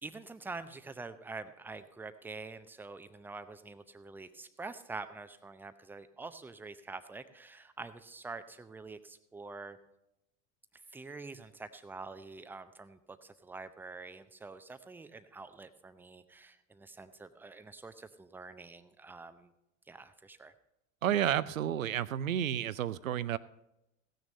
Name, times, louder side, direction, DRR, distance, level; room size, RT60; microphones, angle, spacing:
voice 1, 0.0-9.8 10.9-19.5 19.9-20.5, right 3 dB, 5° right, 11 dB, 0.6 m, -46 dB
voice 2, 21.0-23.4, right 10 dB, 70° right, 18 dB, 0.6 m, -31 dB
16.5 x 6.6 x 5.3 m, 0.86 s
figure-of-eight pair, 80°, 41 cm